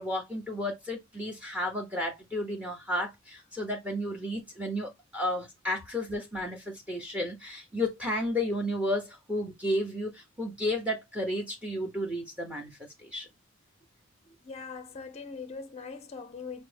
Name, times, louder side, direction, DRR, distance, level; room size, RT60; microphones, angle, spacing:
voice 1, 0.0-13.3, left 1 dB, 5° right, 0.7 m, -32 dB
voice 2, 14.4-16.6, left 5 dB, 30° left, 0.5 m, -41 dB
5.5 x 2.1 x 3.2 m
head